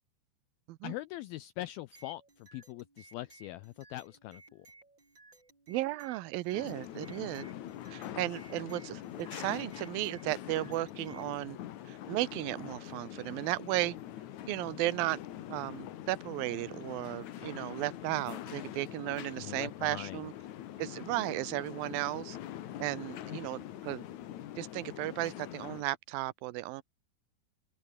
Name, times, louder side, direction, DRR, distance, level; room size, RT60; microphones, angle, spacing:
voice 1, 0.8-4.7 19.4-20.2, left 16 dB, 85° left, 2.1 m, -42 dB
sound 1, 1.9-11.3, right 3 dB, 25° right, 6.3 m, -59 dB
voice 2, 5.7-7.5 7.9-11.6 11.9-14.0 14.5-15.2 15.5-20.3 20.8-22.4 22.8-24.0 24.6-26.8, right 18 dB, 80° right, 2.2 m, -35 dB
sound 2, 6.5-25.8, left 12 dB, 65° left, 1.8 m, -44 dB
open air
omnidirectional pair, 5.1 m